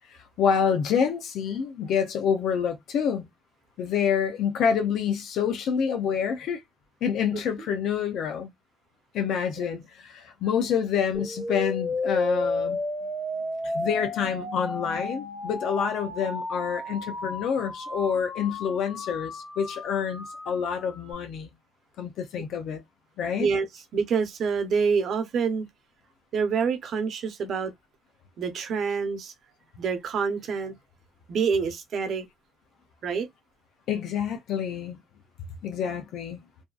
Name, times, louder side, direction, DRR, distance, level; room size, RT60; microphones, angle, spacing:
voice 1, 0.4-3.3 3.8-6.6 7.0-8.5 9.1-12.8 13.6-21.5 22.0-22.8 23.2-23.5 33.9-35.0 35.6-36.4, left 7 dB, 80° left, 0.5 m, -27 dB
sound 1, 11.1-21.1, left 2 dB, 55° left, 1.2 m, -33 dB
voice 2, 23.9-25.7 26.3-27.7 28.4-29.3 29.8-30.7 31.3-32.2 33.0-33.3, right 5 dB, 65° right, 0.7 m, -26 dB
2.6 x 2.3 x 2.3 m
cardioid pair, 90°, 0 cm